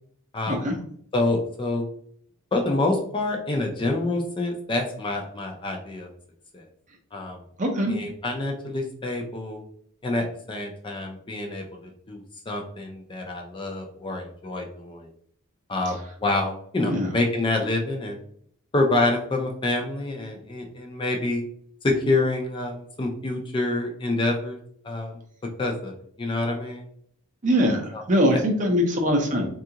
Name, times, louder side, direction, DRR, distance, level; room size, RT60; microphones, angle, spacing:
voice 1, 0.3-0.7 1.1-1.8 2.5-6.1 6.5-6.6 7.1-7.4 7.9-9.6 10.0-15.1 15.7-18.2 18.7-21.4 21.8-24.6 24.8-25.2 25.6-25.9 26.2-26.8 27.9-28.0 28.3-28.4, left 2 dB, 20° left, 1 dB, 0.4 m, -27 dB
voice 2, 7.6-7.9 16.8-17.1 27.4-27.8 28.1-29.5, equal, 35° right, 2 dB, 0.6 m, -22 dB
3.5 x 2.4 x 2.8 m, 0.63 s
head